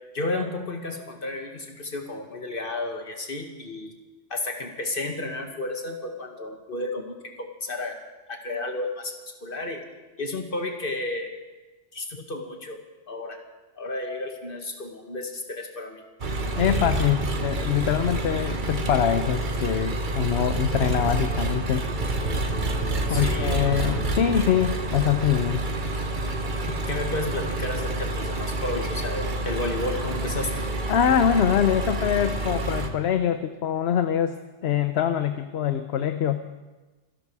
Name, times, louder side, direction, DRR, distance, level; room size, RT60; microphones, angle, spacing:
voice 1, 0.1-3.9 4.3-8.0 8.3-9.8 10.2-11.4 11.9-12.8 13.1-13.4 13.8-16.0 23.1-23.7 26.7-30.5, left 2 dB, 50° left, 3 dB, 2.1 m, -32 dB
Engine, 16.2-32.9, right 2 dB, 45° right, 1.3 m, -28 dB
voice 2, 16.6-21.8 23.1-25.6 30.9-34.4 34.6-36.4, left 9 dB, 65° left, 9 dB, 1.0 m, -24 dB
26.5 x 11.5 x 4.8 m, 1.2 s
omnidirectional pair, 1.2 m